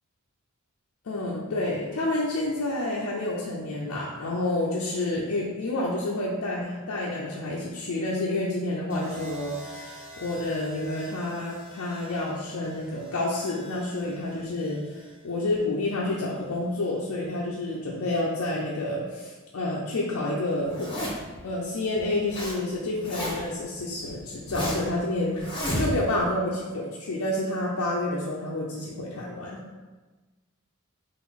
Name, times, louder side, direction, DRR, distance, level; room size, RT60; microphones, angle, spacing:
voice 1, 1.1-21.1 21.4-25.5 25.8-29.6, left 2 dB, 70° left, -5 dB, 0.5 m, -29 dB
sound 1, 8.9-17.0 18.2-18.6, equal, 25° right, 1.2 m, -47 dB
Zipper (clothing), 20.7-21.4 22.0-22.6 22.8-23.6 24.1-24.9 25.4-26.2, equal, 25° left, 1.2 m, -31 dB
3.9 x 2.5 x 4.0 m, 1.2 s
head